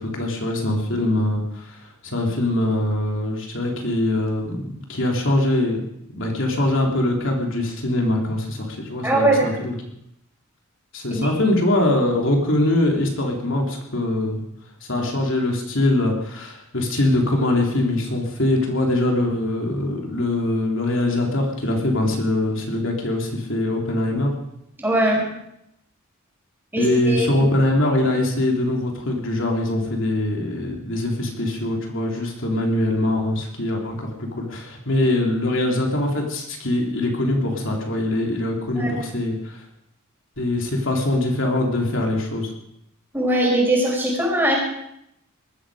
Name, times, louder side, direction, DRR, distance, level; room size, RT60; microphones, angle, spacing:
voice 1, 0.0-5.8 6.1-9.7 10.9-14.5 14.9-24.3 26.8-39.6 40.4-42.5, left 1 dB, 60° left, 1 dB, 3.6 m, -22 dB
voice 2, 9.0-9.5 11.1-11.3 15.0-15.1 24.8-25.2 26.7-27.5 38.8-38.9 43.1-44.6, right 1 dB, 10° right, -2 dB, 5.6 m, -20 dB
19.5 x 14.0 x 5.1 m, 0.78 s
head